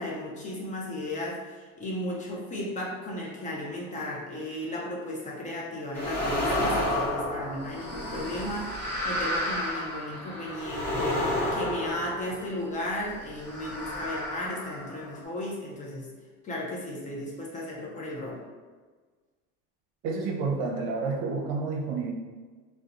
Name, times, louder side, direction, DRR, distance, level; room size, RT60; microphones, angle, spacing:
voice 1, 0.0-16.1 16.4-18.4, left 1 dB, 20° left, -3 dB, 0.4 m, -35 dB
sound 1, 5.9-12.7 13.4-15.2, left 1 dB, 5° left, 0.8 m, -31 dB
voice 2, 20.0-22.1, right 4 dB, 65° right, 0 dB, 0.6 m, -29 dB
2.7 x 2.1 x 2.4 m, 1.4 s
supercardioid pair, 115°, 35 cm